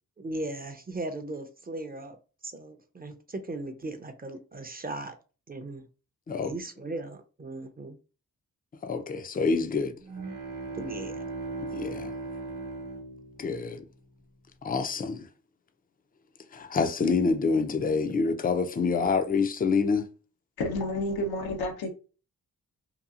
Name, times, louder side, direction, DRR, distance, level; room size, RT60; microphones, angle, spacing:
voice 1, 0.2-2.2 2.4-5.2 5.5-5.9 6.4-8.0 10.8-11.2, right 2 dB, 25° right, 0.6 m, -37 dB
voice 2, 8.8-9.9 11.7-12.1 13.4-13.9 14.6-15.3 16.5-20.1, left 4 dB, 25° left, 0.5 m, -27 dB
sound 1, 10.0-14.0, right 3 dB, 55° right, 1.0 m, -38 dB
voice 3, 20.6-21.9, left 1 dB, 80° left, 0.8 m, -30 dB
2.9 x 2.3 x 2.4 m
supercardioid pair, 45°, 37 cm